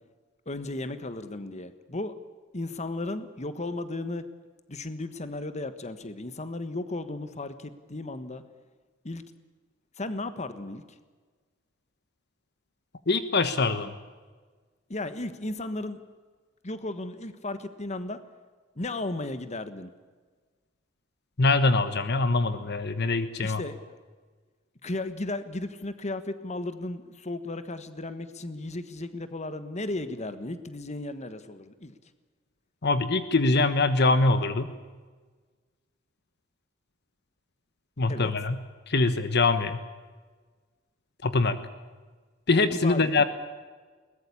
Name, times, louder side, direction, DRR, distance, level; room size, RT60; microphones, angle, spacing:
voice 1, 0.4-2.1 2.5-4.2 4.7-8.4 9.0-9.2 10.0-11.0 14.9-16.0 16.6-18.2 18.7-19.9 23.4-24.0 24.8-31.9 38.1-38.3 42.7-43.2, left 2 dB, 35° left, 11 dB, 1.4 m, -35 dB
voice 2, 13.1-13.9 21.4-23.6 32.8-34.7 38.0-38.6 38.9-39.8 41.2-41.6 42.5-43.2, left 3 dB, 55° left, 11 dB, 1.3 m, -23 dB
22.0 x 19.5 x 8.6 m, 1.4 s
head